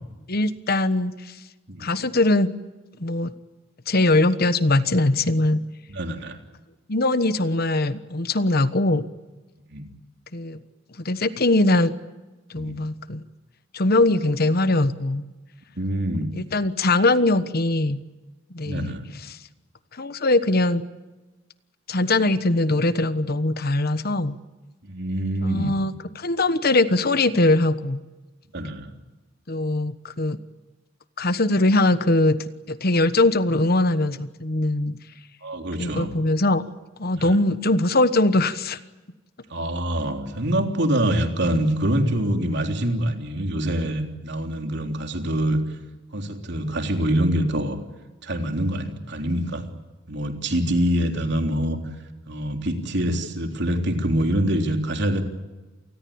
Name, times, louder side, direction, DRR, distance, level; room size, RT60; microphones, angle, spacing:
voice 1, 0.3-1.3 1.8-2.5 3.0-3.3 3.9-5.6 6.9-9.0 10.3-10.6 11.0-11.9 12.5-13.2 13.7-15.2 16.3-18.0 18.5-18.9 20.0-20.8 21.9-24.4 25.4-28.0 29.5-30.4 31.2-32.4 32.7-35.0 35.8-36.6 37.0-38.8, left 2 dB, 50° left, 13 dB, 1.3 m, -21 dB
voice 2, 5.9-6.4 9.7-9.8 12.6-12.8 15.7-16.3 18.6-19.0 24.8-25.7 28.5-28.9 35.4-36.1 39.5-45.6 46.1-47.8 48.2-49.7 50.1-51.8 52.3-55.2, right 1 dB, 60° right, 4 dB, 3.4 m, -25 dB
28.0 x 20.0 x 8.7 m, 1.1 s
head